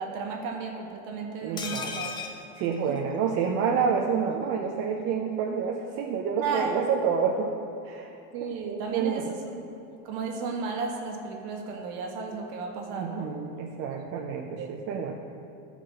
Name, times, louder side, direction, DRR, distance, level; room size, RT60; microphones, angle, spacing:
voice 1, 0.0-2.3 2.9-3.0 6.4-6.8 8.3-9.7 10.0-13.3 14.6-14.7, right 4 dB, 55° right, 2 dB, 1.6 m, -34 dB
voice 2, 1.4-1.9 2.6-7.5 7.8-8.1 8.6-9.3 12.9-15.2, right 6 dB, 35° right, 0 dB, 0.6 m, -28 dB
sound 1, 1.6-3.5 3.8-3.9 4.2-4.3, left 5 dB, 15° left, 0.4 m, -37 dB
14.5 x 4.9 x 6.3 m, 2.8 s
cardioid pair, 165°, 37 cm